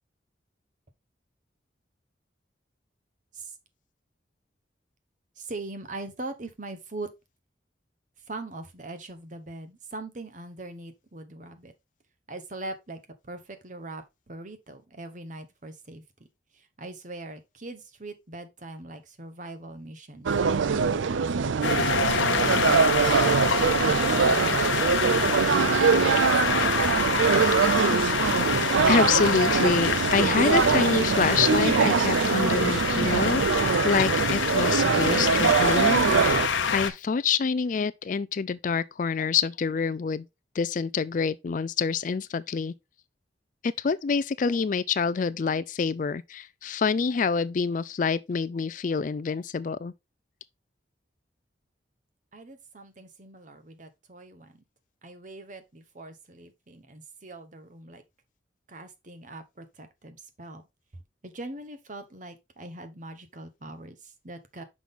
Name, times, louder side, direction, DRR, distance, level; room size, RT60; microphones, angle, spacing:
voice 1, 5.4-7.1 8.3-11.7 12.3-16.0 16.5-21.7 22.0-25.9 52.3-54.6 55.0-58.0 58.7-60.7 60.9-64.6, right 2 dB, 40° right, 1.0 m, -42 dB
sound 1, 20.3-36.5, right 5 dB, 85° right, 0.5 m, -23 dB
sound 2, 21.6-36.9, left 6 dB, 85° left, 0.9 m, -27 dB
voice 2, 28.9-40.2 40.5-42.7 43.6-49.9, left 5 dB, 45° left, 0.4 m, -27 dB
6.1 x 5.5 x 3.7 m
head